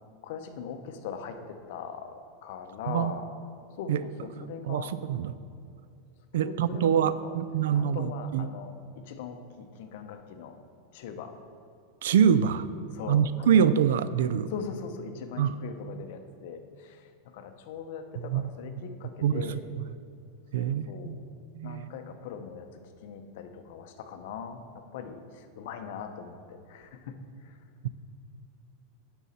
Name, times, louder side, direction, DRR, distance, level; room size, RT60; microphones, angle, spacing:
voice 1, 0.2-3.2 3.8-4.9 6.4-7.3 7.7-8.7 9.1-10.5 10.9-11.3 12.9-13.7 14.5-17.0 17.3-19.6 20.6-21.2 21.6-22.6 23.0-24.6 24.9-27.2, left 6 dB, 60° left, 7 dB, 0.7 m, -40 dB
voice 2, 4.6-5.3 6.3-8.5 12.0-12.7 13.1-14.5 15.4-15.6 18.2-18.5 19.2-19.8 20.5-21.2 21.6-21.9 27.8-27.9, right 8 dB, 85° right, 15 dB, 0.3 m, -25 dB
9.0 x 6.3 x 4.2 m, 2.3 s
supercardioid pair, 155°, 0 cm